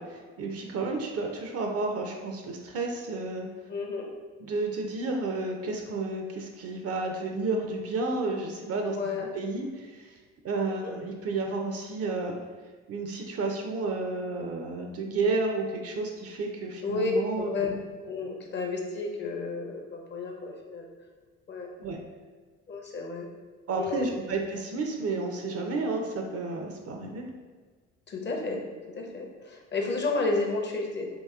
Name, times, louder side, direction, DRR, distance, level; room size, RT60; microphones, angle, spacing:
voice 1, 0.0-3.5 4.4-10.2 10.4-12.3 12.9-17.5 21.8-22.0 23.7-27.3, right 3 dB, 40° right, 3 dB, 0.5 m, -31 dB
voice 2, 3.7-4.1 8.9-9.3 10.7-10.9 16.8-17.7 18.0-20.9 21.5-21.7 22.7-23.3 23.7-24.2 28.1-28.6 28.9-31.1, left 3 dB, 30° left, 1 dB, 0.6 m, -31 dB
2.8 x 2.8 x 2.3 m, 1.4 s
hypercardioid pair, 60°, 36 cm